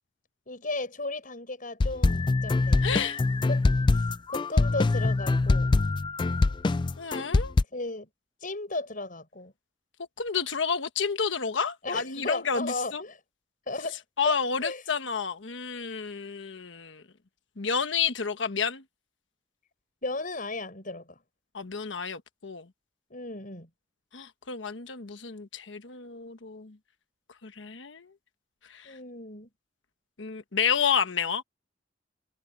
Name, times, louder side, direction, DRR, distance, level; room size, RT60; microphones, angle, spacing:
voice 1, 0.5-2.8 3.5-3.6 3.9-4.1 4.3-5.7 7.7-8.1 8.4-9.5 11.8-13.2 13.7-14.4 14.6-14.8 20.0-21.2 23.1-23.7 28.8-29.5, left 2 dB, 45° left, 7.0 m, -35 dB
sound 1, 1.8-7.6, left 3 dB, 25° left, 0.3 m, -24 dB
voice 2, 2.8-3.2 7.0-7.5 10.2-13.0 14.2-17.0 17.6-18.8 21.5-22.7 24.1-26.8 27.4-28.1 28.7-28.9 30.2-31.4, left 6 dB, 85° left, 1.2 m, -30 dB
head